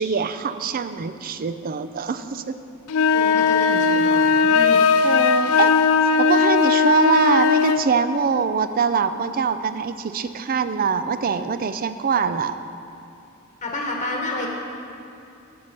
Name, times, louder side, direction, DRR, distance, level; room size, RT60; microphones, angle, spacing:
voice 1, 0.0-2.6 5.0-5.8 6.2-12.6, right 5 dB, 45° right, 11 dB, 0.4 m, -23 dB
sound 1, 2.9-7.9, left 5 dB, 85° left, 0.4 m, -18 dB
voice 2, 3.1-4.9 13.6-14.5, left 1 dB, 35° left, 0 dB, 1.2 m, -30 dB
11.0 x 5.6 x 6.6 m, 2.7 s
head